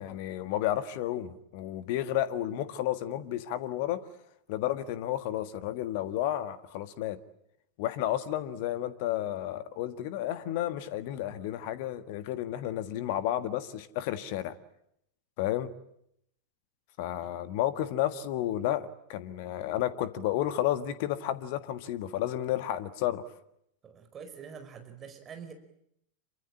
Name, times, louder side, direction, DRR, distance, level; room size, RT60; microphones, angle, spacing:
voice 1, 0.0-4.0 4.5-7.2 7.8-14.5 15.4-15.7 17.0-23.2, left 12 dB, 50° left, 1.6 m, -32 dB
voice 2, 23.8-25.5, right 6 dB, 25° right, 4.9 m, -45 dB
28.0 x 25.0 x 8.7 m
figure-of-eight pair, 90°, 0 cm